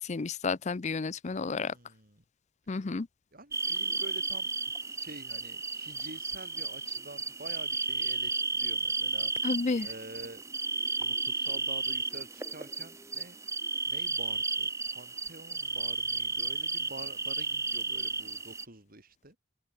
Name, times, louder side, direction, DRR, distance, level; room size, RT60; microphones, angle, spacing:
voice 1, 0.0-1.7 2.7-3.1 9.4-9.9, left 4 dB, 40° left, 0.5 m, -31 dB
voice 2, 1.3-2.2 3.3-4.5 4.8-9.3 9.8-10.4 11.0-13.4 13.9-19.4, right 2 dB, 50° right, 6.0 m, -48 dB
sound 1, 3.5-18.6, right 3 dB, 15° right, 1.5 m, -33 dB
head